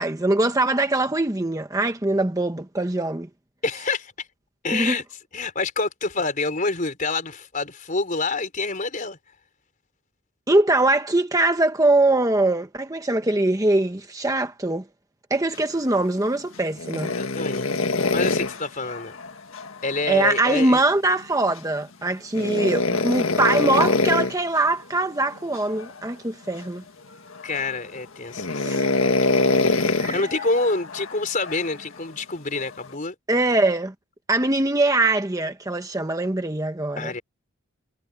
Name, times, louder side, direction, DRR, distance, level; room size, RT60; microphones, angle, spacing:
voice 1, 0.0-3.3 4.7-4.9 10.5-14.8 15.3-17.1 20.1-26.8 28.7-28.9 30.0-30.3 33.3-33.9 34.3-37.1, right 2 dB, 15° right, 1.0 m, -22 dB
voice 2, 3.6-4.3 4.6-5.0 5.3-9.2 17.1-17.7 18.1-19.2 19.8-20.8 27.4-28.8 29.6-33.1 37.0-37.2, left 3 dB, 40° left, 4.2 m, -27 dB
sound 1, 16.7-20.0 22.3-24.4 25.5-26.0 26.6-26.7 27.3-27.8 28.3-31.8 32.6-32.9, left 3 dB, 70° left, 1.8 m, -24 dB
head